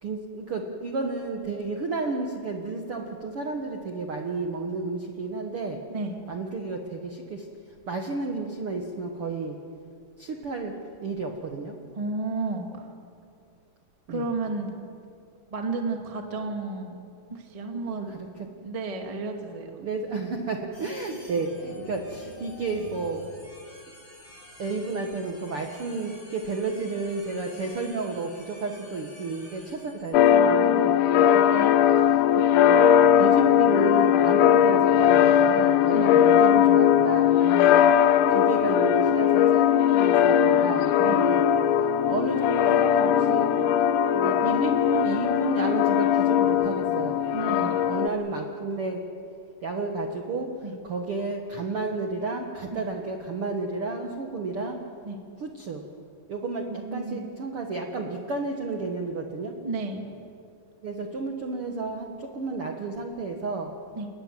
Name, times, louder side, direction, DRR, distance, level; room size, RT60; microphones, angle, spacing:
voice 1, 0.0-5.8 6.3-7.4 7.9-9.6 10.2-11.8 14.1-14.3 17.9-18.3 19.8-23.2 24.6-31.5 32.5-32.9 33.2-37.8 38.3-41.5 42.1-43.6 44.1-47.3 47.6-49.0 49.6-50.5 50.8-54.8 55.4-55.8 56.3-59.5 60.8-63.7, right 3 dB, 60° right, 3 dB, 1.4 m, -32 dB
voice 2, 11.9-12.9 14.1-14.8 15.5-17.0 17.3-18.1 18.6-19.8 21.1-21.2 31.3-31.8 35.9-36.2 41.0-41.2 47.3-47.8 50.6-50.7 52.7-52.8 55.0-55.2 56.7-57.2 59.6-60.1 63.9-64.1, right 3 dB, 20° right, 3 dB, 0.9 m, -32 dB
sound 1, 20.7-30.1, left 1 dB, 30° left, 7.7 m, -48 dB
sound 2, 30.1-48.1, left 9 dB, 90° left, 1.7 m, -20 dB
29.5 x 19.5 x 7.7 m, 2.4 s
omnidirectional pair, 4.6 m